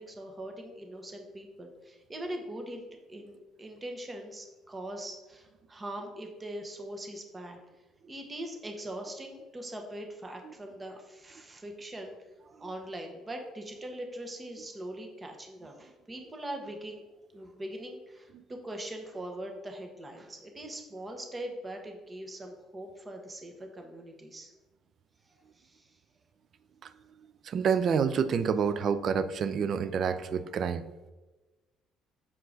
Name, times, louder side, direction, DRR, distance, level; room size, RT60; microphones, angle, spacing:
voice 1, 0.0-7.6 8.1-12.1 12.6-17.0 17.3-24.5 25.6-25.8, right 1 dB, 25° right, 3 dB, 1.3 m, -41 dB
voice 2, 27.5-30.8, right 6 dB, 50° right, 13 dB, 0.4 m, -28 dB
7.3 x 4.6 x 3.9 m, 1.2 s
hypercardioid pair, 55°, 0 cm